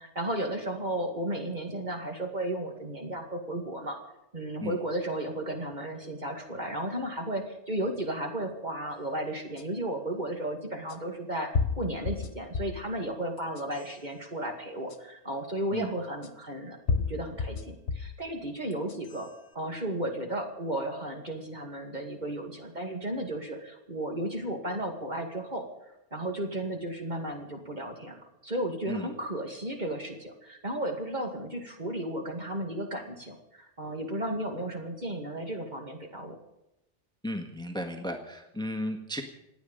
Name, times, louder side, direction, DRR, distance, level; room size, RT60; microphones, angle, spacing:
voice 1, 0.0-4.0 4.3-11.5 11.8-19.3 19.5-25.7 26.1-36.4, right 1 dB, 40° right, 2 dB, 2.3 m, -34 dB
sound 1, 9.6-9.7 10.9-11.0 11.5-12.9 13.4-13.9 14.9-15.0 16.2-16.3 16.9-18.2 18.7-19.3, left 5 dB, 65° left, 1.5 m, -31 dB
voice 2, 37.2-39.2, left 1 dB, 5° left, 4 dB, 1.5 m, -34 dB
27.5 x 9.3 x 5.4 m, 0.88 s
omnidirectional pair, 1.2 m